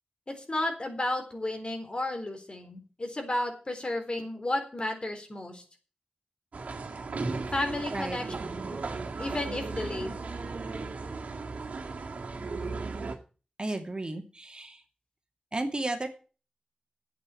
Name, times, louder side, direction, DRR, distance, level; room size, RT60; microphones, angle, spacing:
voice 1, 0.3-5.6 7.5-8.2 8.7-8.8 9.2-10.2, left 1 dB, 45° left, 5 dB, 3.9 m, -32 dB
sound 1, 6.5-13.2, right 3 dB, 80° right, 2.1 m, -36 dB
voice 2, 13.6-14.8 15.5-16.1, right 2 dB, 40° right, 4 dB, 2.5 m, -33 dB
9.6 x 8.6 x 8.4 m, 0.37 s
cardioid pair, 50°, 2 cm